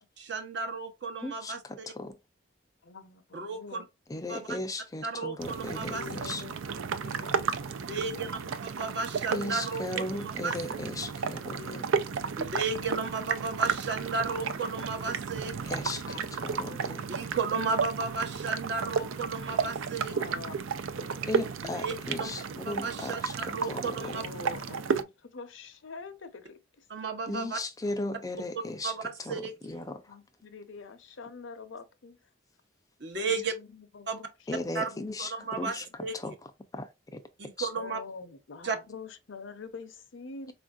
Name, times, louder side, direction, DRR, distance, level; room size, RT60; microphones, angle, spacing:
voice 1, 0.2-1.9 3.3-3.8 4.3-4.5 5.0-6.0 7.9-9.9 10.2-10.5 12.4-15.8 17.1-20.1 21.6-22.3 22.6-24.2 26.9-27.6 28.8-29.8 33.0-33.5 34.1-34.2 34.7-34.9 35.2-36.1 37.6-38.0 38.6-38.8, right 4 dB, 55° right, 0.8 m, -34 dB
voice 2, 1.2-2.2 4.1-6.4 9.3-11.9 15.7-17.0 21.3-24.2 27.3-30.2 34.5-35.9 36.1-37.2 37.6-37.7, left 2 dB, 15° left, 0.4 m, -37 dB
voice 3, 2.8-3.9 5.8-8.5 11.3-12.5 15.8-16.3 16.6-16.8 20.0-21.5 22.0-22.5 24.0-26.9 27.3-27.4 30.1-32.3 33.2-34.3 34.7-35.1 35.4-35.5 37.7-40.5, left 4 dB, 70° left, 0.6 m, -46 dB
sound 1, 5.4-25.0, right 6 dB, 80° right, 0.4 m, -33 dB
4.4 x 2.5 x 2.3 m
head